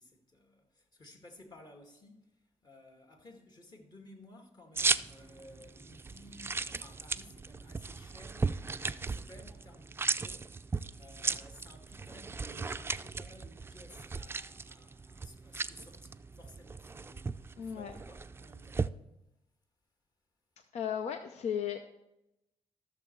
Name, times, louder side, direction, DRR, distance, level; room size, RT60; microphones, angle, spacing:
voice 1, 0.0-18.8, left 1 dB, 40° left, 2.2 m, -56 dB
sound 1, 4.8-18.9, right 4 dB, 20° right, 0.4 m, -37 dB
voice 2, 17.6-17.9 20.7-21.8, left 8 dB, 85° left, 0.6 m, -35 dB
13.5 x 6.7 x 4.6 m
cardioid pair, 85°, 11 cm